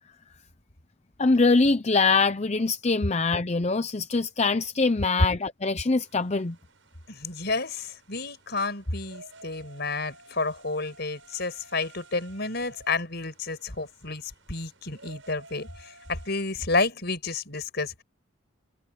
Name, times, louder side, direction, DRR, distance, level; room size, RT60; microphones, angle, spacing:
voice 1, 1.2-6.6, left 3 dB, 35° left, 0.6 m, -23 dB
sound 1, 6.0-16.4, right 2 dB, 70° right, 7.9 m, -53 dB
voice 2, 7.1-18.0, left 3 dB, 55° left, 5.6 m, -30 dB
head